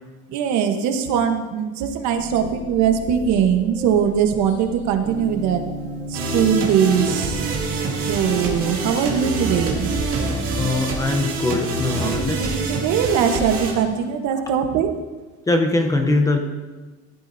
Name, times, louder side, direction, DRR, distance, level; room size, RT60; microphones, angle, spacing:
voice 1, 0.3-5.6 6.1-7.4 8.0-9.9 12.0-14.9, right 8 dB, 65° right, 6 dB, 1.2 m, -21 dB
sound 1, 2.1-13.7, left 2 dB, 40° left, 3.5 m, -42 dB
Gong, 5.0-10.9, equal, 90° right, 3.1 m, -35 dB
sound 2, 6.1-13.7, right 3 dB, 45° right, 2.2 m, -26 dB
voice 2, 10.5-12.6 14.3-14.4 15.5-16.4, left 2 dB, 10° left, 4 dB, 0.7 m, -22 dB
15.5 x 12.0 x 2.7 m, 1.3 s
cardioid pair, 180°, 31 cm